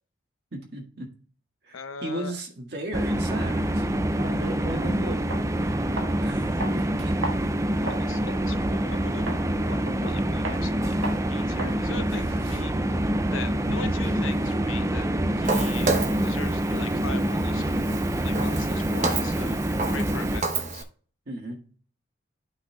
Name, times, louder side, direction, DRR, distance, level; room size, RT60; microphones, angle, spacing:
voice 1, 0.5-1.1 1.6-3.9 4.1-5.2 5.6-5.8 6.2-7.1 7.7-8.2 12.2-12.3 15.8-16.1 21.3-21.6, right 1 dB, 55° right, -1 dB, 1.8 m, -36 dB
voice 2, 1.7-2.4 7.8-9.3 9.7-11.0 11.3-13.0 13.3-15.1 15.3-15.9 16.2-17.7 18.2-20.9, left 5 dB, 85° left, 9 dB, 0.8 m, -40 dB
sound 1, 2.9-20.4, right 1 dB, 15° right, 0.4 m, -26 dB
sound 2, 5.3-5.5 6.0-6.2 6.6-8.1 8.5-8.6 9.3-9.5 9.9-10.1 10.4-10.6 11.0-11.2 11.6-11.8 12.1-14.0, right 2 dB, 75° right, 1.4 m, -36 dB
Walk footsteps, 15.4-20.8, right 3 dB, 35° right, 0.9 m, -31 dB
12.0 x 5.4 x 2.3 m, 0.44 s
head